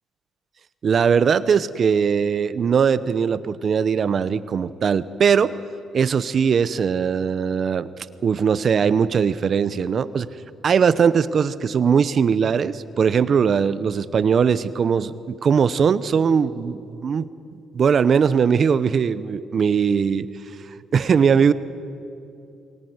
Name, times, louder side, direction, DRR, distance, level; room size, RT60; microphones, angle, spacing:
voice 1, 0.8-5.5 5.9-7.9 8.2-10.3 10.6-17.3 17.7-20.3 20.9-21.5, right 6 dB, 50° right, 15 dB, 0.8 m, -20 dB
23.5 x 18.5 x 9.5 m, 2.7 s
cardioid pair, 90°, 0 cm